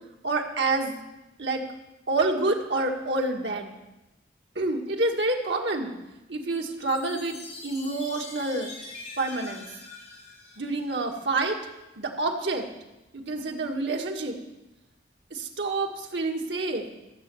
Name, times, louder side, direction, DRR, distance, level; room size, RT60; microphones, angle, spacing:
voice 1, 0.2-1.0 1.4-1.6 2.1-3.8 4.6-5.9 6.3-8.7 9.2-9.7 10.6-11.6 12.0-12.7 13.1-14.4 15.3-16.9, right 2 dB, 80° right, 1 dB, 1.8 m, -28 dB
Chime, 6.8-11.3, left 3 dB, 40° left, 4.3 m, -44 dB
15.5 x 7.9 x 7.1 m, 0.99 s
head